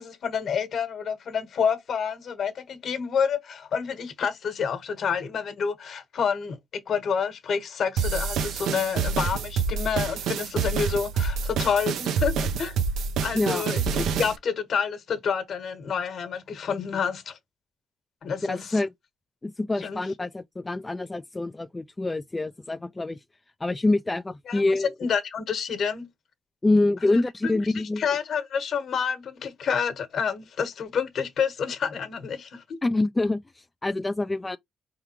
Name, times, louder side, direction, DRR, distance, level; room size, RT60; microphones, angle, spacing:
voice 1, 0.0-12.8 13.2-17.4 18.2-18.8 19.8-20.1 24.5-24.6 25.0-26.1 27.0-27.1 27.4-27.6 28.0-32.6, left 6 dB, 60° left, 1.3 m, -28 dB
sound 1, 8.0-14.4, right 6 dB, 80° right, 0.7 m, -27 dB
voice 2, 13.3-13.6 18.4-18.9 19.4-23.2 23.6-24.9 26.6-28.0 32.8-34.6, left 2 dB, 20° left, 0.3 m, -26 dB
4.6 x 3.6 x 3.0 m
cardioid pair, 90°, 0 cm